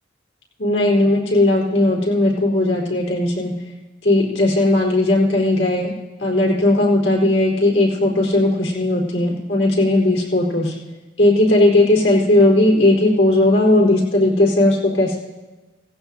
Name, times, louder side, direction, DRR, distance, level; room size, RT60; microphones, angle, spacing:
voice 1, 0.6-3.5 4.0-5.9 6.2-10.7 11.2-15.2, left 1 dB, 80° left, -3 dB, 4.0 m, -17 dB
17.0 x 15.5 x 2.7 m, 1.2 s
head